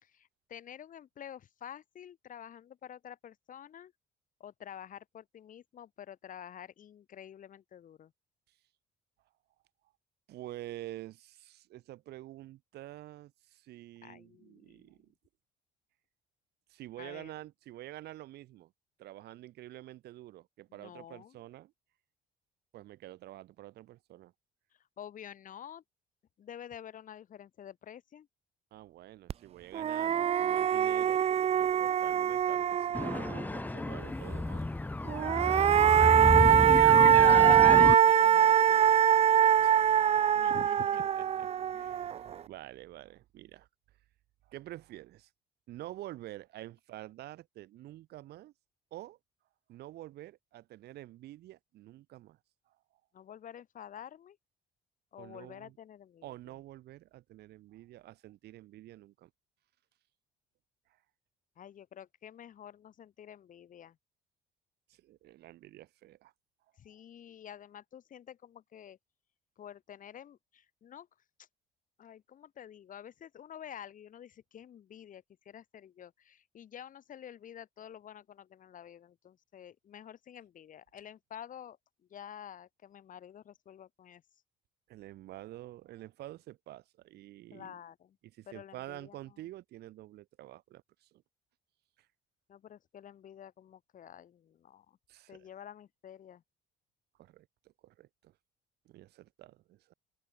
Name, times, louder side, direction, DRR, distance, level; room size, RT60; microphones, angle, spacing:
voice 1, 0.0-3.9 4.4-8.1 14.0-14.9 17.0-17.3 20.7-21.4 24.7-25.8 26.4-28.3 37.5-38.8 40.4-41.1 41.7-42.4 53.1-54.4 55.1-56.6 61.6-64.0 66.8-69.0 69.6-71.1 71.4-71.5 72.0-84.2 87.5-88.2 88.5-89.4 92.5-95.0 95.3-96.4, left 9 dB, 50° left, 3.7 m, -49 dB
voice 2, 10.3-15.1 16.7-18.7 19.0-21.7 22.7-24.3 28.7-31.2 31.6-34.7 35.4-36.1 39.6-40.2 41.8-43.7 44.5-45.3 45.7-48.5 48.9-49.2 49.7-52.4 52.7-52.8 55.2-55.7 56.2-59.3 64.9-66.3 84.9-87.8 88.4-91.2 92.0-92.1 95.1-95.5 97.2-97.5 97.8-98.3 98.9-99.9, right 15 dB, 75° right, 4.2 m, -48 dB
sound 1, 29.3-29.4 29.7-33.4 35.1-42.3, right 9 dB, 40° right, 0.5 m, -23 dB
sound 2, 32.9-37.9, left 2 dB, 10° left, 0.9 m, -31 dB
open air
cardioid pair, 110°, 17 cm